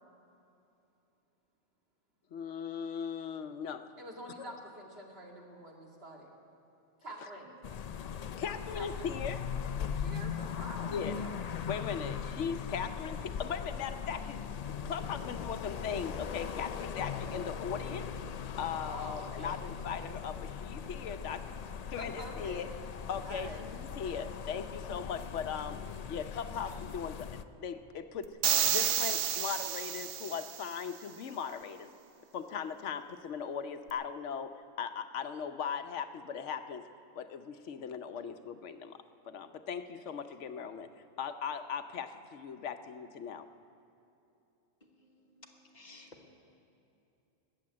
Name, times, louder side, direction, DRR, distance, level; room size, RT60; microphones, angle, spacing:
voice 1, 2.3-3.9 7.2-7.3 8.1-9.4 10.9-11.1 11.7-14.4 14.8-18.1 18.6-21.4 21.9-22.7 23.1-25.8 26.1-27.3 27.6-28.3 28.6-31.9 32.3-34.5 34.8-36.8 37.1-39.0 39.2-40.9 41.2-43.5, left 7 dB, 80° left, 9 dB, 1.0 m, -38 dB
voice 2, 4.0-6.3 7.0-7.5 8.7-9.1 10.0-11.4 18.9-19.6 22.0-22.6 23.2-23.6, right 1 dB, 60° right, -1 dB, 2.4 m, -46 dB
sound 1, 7.6-27.4, left 7 dB, 60° left, 0.4 m, -39 dB
sound 2, 28.4-30.7, right 9 dB, 75° right, 1.0 m, -30 dB
voice 3, 45.7-46.3, left 2 dB, 40° left, 2 dB, 1.3 m, -53 dB
20.5 x 7.7 x 8.5 m, 2.9 s
omnidirectional pair, 1.2 m